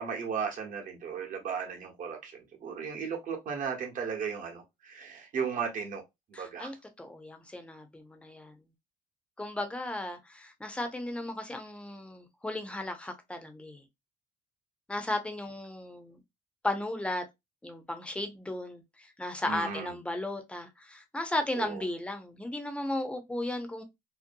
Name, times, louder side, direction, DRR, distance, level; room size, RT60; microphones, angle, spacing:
voice 1, 0.0-6.0 6.3-6.7 19.4-19.9 21.5-21.8, right 6 dB, 50° right, 1.0 m, -35 dB
voice 2, 6.3-8.6 9.4-13.8 14.9-16.2 16.6-17.3 17.6-23.8, left 1 dB, 5° left, 0.6 m, -35 dB
2.6 x 2.1 x 2.5 m
cardioid pair, 110°, 17 cm